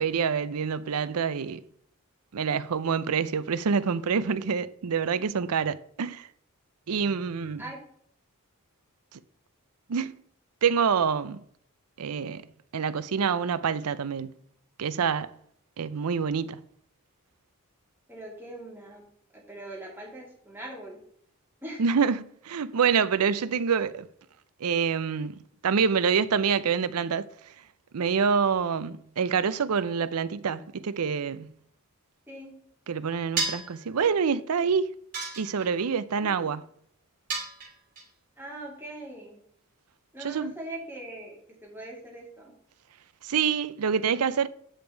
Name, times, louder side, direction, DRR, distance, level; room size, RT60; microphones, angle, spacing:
voice 1, 0.0-1.6 2.3-6.3 6.9-7.6 9.9-10.2 10.6-11.4 12.0-12.5 12.7-14.3 14.8-15.3 15.8-16.6 21.8-24.1 24.6-27.3 27.9-31.5 32.9-34.9 35.4-36.6 40.2-40.5 43.2-44.5, right 6 dB, 85° right, 0.5 m, -26 dB
voice 2, 18.1-19.0 19.3-21.0 21.6-21.8 32.3-32.5 36.2-36.5 38.4-39.4 40.1-42.5, right 1 dB, 10° right, 2.5 m, -41 dB
sound 1, 33.4-33.8 35.1-35.9 37.3-38.0, right 4 dB, 40° right, 3.0 m, -31 dB
8.9 x 5.2 x 4.5 m
head